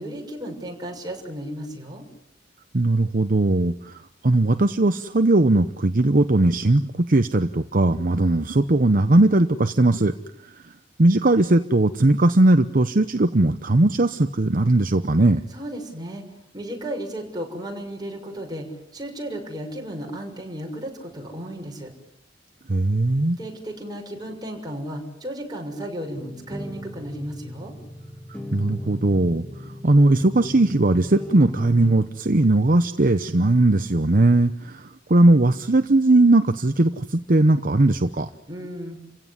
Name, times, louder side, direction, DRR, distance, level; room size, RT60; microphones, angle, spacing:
voice 1, 0.0-2.0 15.5-16.2 16.5-18.7 18.9-21.9 23.4-27.7 38.5-39.0, right 1 dB, 20° right, 2 dB, 6.3 m, -34 dB
voice 2, 2.7-10.1 11.0-15.4 22.7-23.4 28.5-38.3, right 2 dB, 50° right, 9 dB, 0.9 m, -19 dB
sound 1, 26.1-32.1, left 1 dB, 5° left, 1.9 m, -37 dB
30.0 x 16.5 x 9.8 m, 0.82 s
head